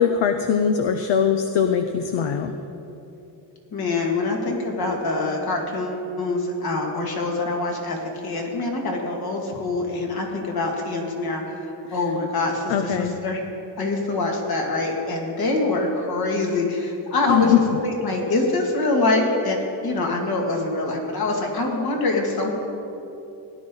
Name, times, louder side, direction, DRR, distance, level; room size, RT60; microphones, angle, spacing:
voice 1, 0.0-2.5 12.7-13.2 17.3-17.6, left 8 dB, 70° left, 7 dB, 0.8 m, -21 dB
voice 2, 3.7-8.0 8.2-13.4 13.8-17.5 17.8-22.5, left 2 dB, 50° left, 1 dB, 2.2 m, -25 dB
17.5 x 11.0 x 3.9 m, 2.8 s
cardioid pair, 135°, 46 cm